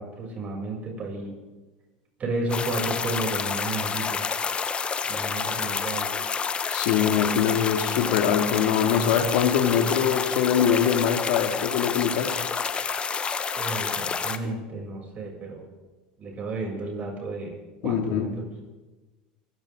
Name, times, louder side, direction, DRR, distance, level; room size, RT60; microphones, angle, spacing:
voice 1, 0.0-1.3 2.2-4.2 5.1-6.1 13.5-15.7 16.2-17.5 17.8-18.3, right 2 dB, 35° right, 0 dB, 7.3 m, -32 dB
sound 1, 2.5-14.4, left 6 dB, 25° left, 1.1 m, -29 dB
voice 2, 6.7-12.4 17.8-18.3, left 8 dB, 70° left, 5 dB, 2.2 m, -23 dB
24.0 x 15.5 x 3.8 m, 1.2 s
hypercardioid pair, 95°, 4 cm